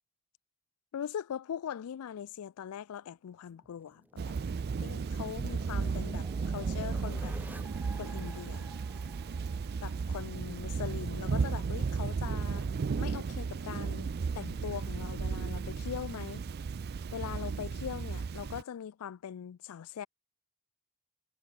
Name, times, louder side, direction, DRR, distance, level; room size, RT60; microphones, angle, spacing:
voice 1, 0.9-4.4 4.8-7.4 7.9-8.7 9.8-12.7 13.0-16.4 17.1-20.1, left 8 dB, 85° left, 0.4 m, -41 dB
sound 1, 3.6-10.4, right 1 dB, 10° right, 1.0 m, -49 dB
Thunder / Rain, 4.2-18.6, right 5 dB, 50° right, 0.4 m, -34 dB
head